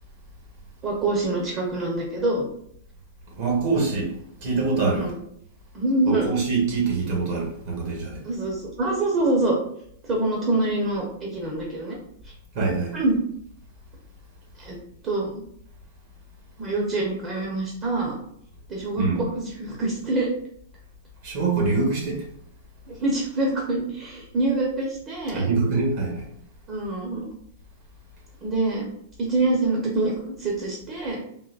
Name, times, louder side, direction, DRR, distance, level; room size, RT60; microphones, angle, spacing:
voice 1, 0.8-2.5 4.9-5.2 5.7-6.3 8.2-9.6 10.0-12.0 12.2-12.3 12.9-13.2 14.6-14.8 15.0-15.4 16.6-18.2 18.7-20.3 22.9-25.4 26.7-27.3 28.4-28.9 29.2-31.2, right 2 dB, 30° right, -2 dB, 1.0 m, -25 dB
voice 2, 3.4-4.1 4.4-5.1 6.1-8.2 12.5-12.9 19.0-19.2 21.2-22.2 25.3-26.3, right 4 dB, 55° right, -1 dB, 1.3 m, -24 dB
3.8 x 2.5 x 2.5 m, 0.70 s
hypercardioid pair, 120°, 0 cm